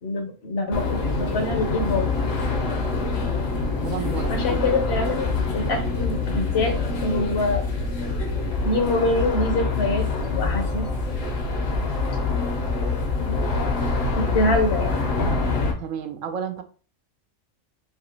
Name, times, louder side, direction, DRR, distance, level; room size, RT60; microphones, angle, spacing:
voice 1, 0.0-2.1 4.3-7.6 8.6-10.1 10.3-10.9 13.3-13.6 14.2-15.4, left 2 dB, 60° left, 5 dB, 1.0 m, -25 dB
sound 1, 0.7-15.7, left 3 dB, 75° left, 1.5 m, -25 dB
voice 2, 3.8-4.6 15.8-16.6, right 7 dB, 80° right, 7 dB, 1.1 m, -32 dB
4.2 x 2.9 x 3.9 m, 0.38 s
omnidirectional pair, 1.3 m